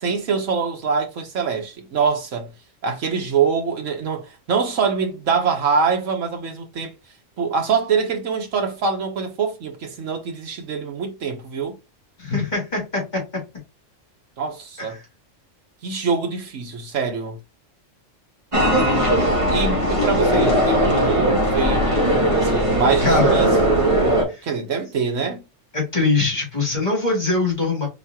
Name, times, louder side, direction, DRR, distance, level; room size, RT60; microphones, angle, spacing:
voice 1, 0.0-2.5 2.8-6.9 7.4-11.7 14.4-15.0 15.8-17.4 19.5-21.9 22.3-23.5 23.9-25.4, right 5 dB, 75° right, 1.5 m, -24 dB
voice 2, 12.2-13.2 14.8-15.0 23.0-23.3 24.3-24.5 25.7-27.9, left 3 dB, 35° left, 2.4 m, -22 dB
sound 1, 18.5-24.2, right 1 dB, 25° right, 1.5 m, -19 dB
4.7 x 3.8 x 2.8 m
omnidirectional pair, 1.3 m